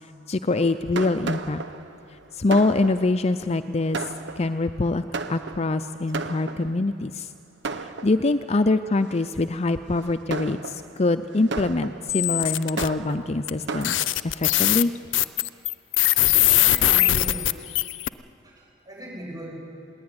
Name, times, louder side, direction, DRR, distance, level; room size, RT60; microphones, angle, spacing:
voice 1, 0.3-1.6 2.3-4.0 4.4-7.3 7.8-14.0 14.2-14.9, left 2 dB, 35° left, 10 dB, 0.5 m, -24 dB
Fireworks, 0.5-7.0 7.6-8.5 9.1-9.4 9.9-14.1, right 4 dB, 65° right, 1.0 m, -35 dB
sound 1, 12.1-12.9 13.5-13.6 13.8-18.1, left 15 dB, 80° left, 0.6 m, -21 dB
voice 2, 16.5-17.5 18.4-19.7, right 1 dB, 20° right, -2 dB, 7.3 m, -39 dB
21.0 x 17.5 x 9.6 m, 2.7 s
head